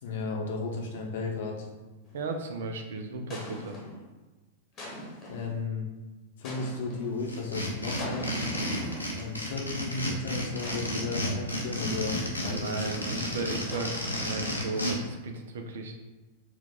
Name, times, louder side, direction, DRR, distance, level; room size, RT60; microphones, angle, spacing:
voice 1, 0.0-1.7 5.3-5.8 6.4-8.3 9.1-12.9, left 3 dB, 55° left, 0 dB, 0.8 m, -34 dB
sound 1, 2.0-2.4 3.3-4.1 4.8-5.6 6.4-7.2 8.0-9.6 10.6-11.9 13.7-14.9, equal, 30° left, 1.0 m, -42 dB
voice 2, 2.1-3.8 12.5-15.9, right 3 dB, 60° right, 5 dB, 0.5 m, -35 dB
sound 2, 7.3-14.9, left 1 dB, 90° left, 0.7 m, -32 dB
4.4 x 2.4 x 3.6 m, 1.2 s
figure-of-eight pair, 95°, 0 cm